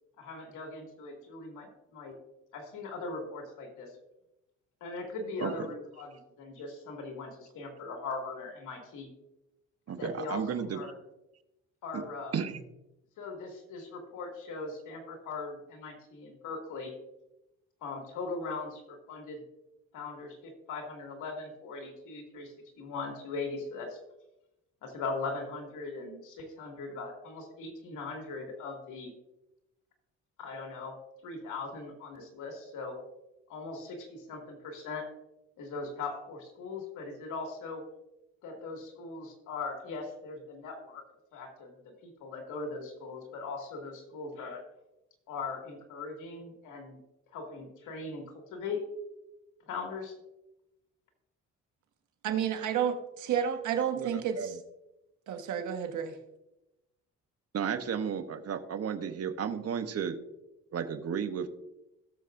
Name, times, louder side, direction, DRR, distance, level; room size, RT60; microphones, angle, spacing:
voice 1, 0.2-2.2 2.5-3.9 4.8-9.1 9.9-10.9 11.8-12.3 13.2-16.9 17.8-19.4 19.9-24.0 24.8-29.1 30.4-31.0 31.2-33.0 33.5-35.1 35.6-37.8 38.4-41.0 41.3-41.7 42.0-44.6 45.3-47.0 47.3-48.8 49.7-50.1, left 3 dB, 80° left, 2 dB, 2.5 m, -40 dB
voice 2, 9.9-10.8 11.9-12.0 12.3-12.6 53.9-54.6 57.5-60.2 60.7-61.5, right 7 dB, 55° right, 9 dB, 1.0 m, -33 dB
voice 3, 52.2-54.5 55.3-56.2, right 8 dB, 75° right, 6 dB, 1.5 m, -31 dB
17.0 x 7.2 x 2.6 m, 0.93 s
cardioid pair, 90°, 30 cm